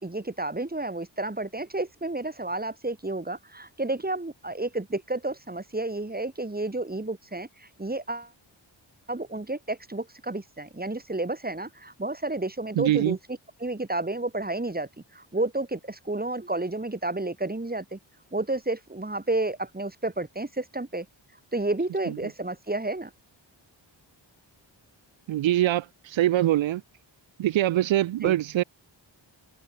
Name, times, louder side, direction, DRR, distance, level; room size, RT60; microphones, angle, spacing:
voice 1, 0.0-8.3 9.1-13.2 13.6-18.0 18.3-21.1 21.5-23.1 28.2-28.3, right 2 dB, 20° right, 3.2 m, -31 dB
voice 2, 12.8-13.2 25.3-26.8 27.4-28.6, right 13 dB, 80° right, 0.5 m, -23 dB
wide cardioid pair, 85°, 45 cm